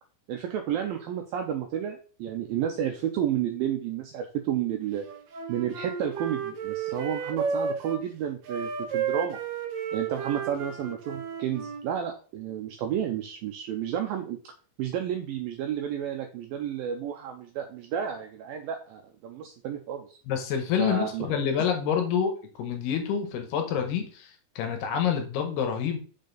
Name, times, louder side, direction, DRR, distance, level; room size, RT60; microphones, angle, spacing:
voice 1, 0.3-5.1 5.5-9.4 9.9-14.4 14.8-20.2 20.8-21.3, right 9 dB, 90° right, 4 dB, 2.0 m, -31 dB
Wind instrument woodwind instrument, 5.0-8.0 8.5-11.8, right 6 dB, 70° right, 1.6 m, -32 dB
voice 2, 20.3-24.3 24.6-26.0, left 8 dB, 75° left, 5 dB, 2.9 m, -27 dB
6.5 x 6.4 x 4.0 m, 0.39 s
omnidirectional pair, 4.9 m